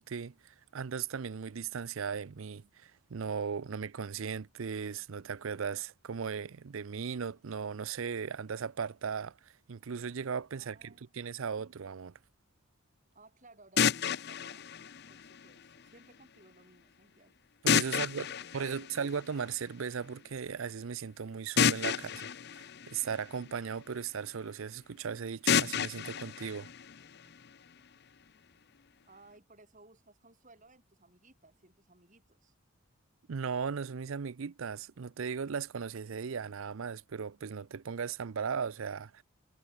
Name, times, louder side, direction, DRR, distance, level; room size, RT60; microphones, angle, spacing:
voice 1, 0.0-12.1 17.6-18.3 18.5-22.3 22.5-26.7 33.3-39.2, right 6 dB, 70° right, 0.5 m, -37 dB
voice 2, 10.5-11.1 13.1-14.7 15.1-17.4 17.8-18.9 29.1-32.5, right 2 dB, 35° right, 5.8 m, -60 dB
sound 1, 13.8-15.8 17.7-19.6 21.6-23.8 25.5-27.5, left 7 dB, 50° left, 0.7 m, -31 dB
head